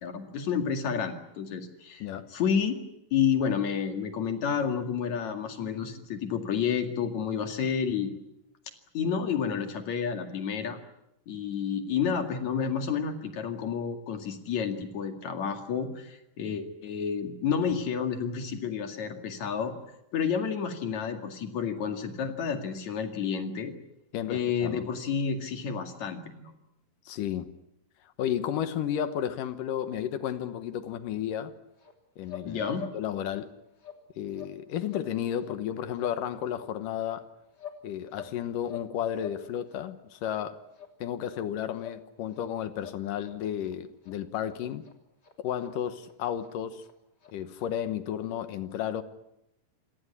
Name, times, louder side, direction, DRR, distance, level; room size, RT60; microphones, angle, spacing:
voice 1, 0.0-2.8 3.1-8.1 8.9-10.8 11.3-19.7 20.1-23.7 24.3-26.5 32.4-32.9, left 7 dB, 60° left, 3.4 m, -30 dB
voice 2, 24.1-24.9 27.1-27.5 28.2-31.5 32.2-33.5 34.2-37.3 37.8-40.6 41.0-44.8 45.4-46.8 47.3-49.0, left 10 dB, 80° left, 2.7 m, -33 dB
sound 1, 31.8-31.9 32.2-32.5 32.7-33.0 33.2-33.4 33.8-34.0 34.3-34.6 34.8-35.1 35.4-35.6 35.9-36.2 36.5-36.7 37.0-37.8 38.1-38.9 39.1-39.4 39.7-39.9 40.2-40.3 40.7-40.9 41.2-41.4 41.8-42.0 42.3-42.5 42.8-43.3 43.6-43.7 44.0-44.1 44.4-44.5 44.8-44.9 45.2-45.3 45.6-45.7 46.0-46.1 46.4-46.5 46.8-46.9 47.2-47.3 47.6-47.7, left 8 dB, 30° left, 3.6 m, -46 dB
28.0 x 17.5 x 9.7 m
omnidirectional pair, 3.8 m